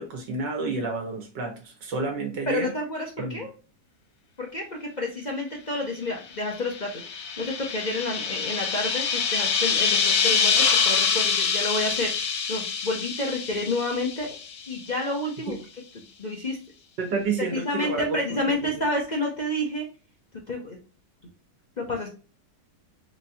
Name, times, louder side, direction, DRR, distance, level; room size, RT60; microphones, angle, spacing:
voice 1, 0.0-2.7 3.2-3.4 15.5-15.6 17.0-18.7, right 4 dB, 85° right, 3 dB, 1.8 m, -30 dB
voice 2, 2.5-3.5 4.4-7.1 7.4-14.4 14.7-15.6 15.9-16.6 17.5-19.8 20.5-20.8 21.8-22.1, left 1 dB, 35° left, -1 dB, 0.7 m, -29 dB
sound 1, 6.5-14.8, left 6 dB, 65° left, 1.2 m, -25 dB
4.2 x 3.0 x 2.7 m, 0.34 s
omnidirectional pair, 1.9 m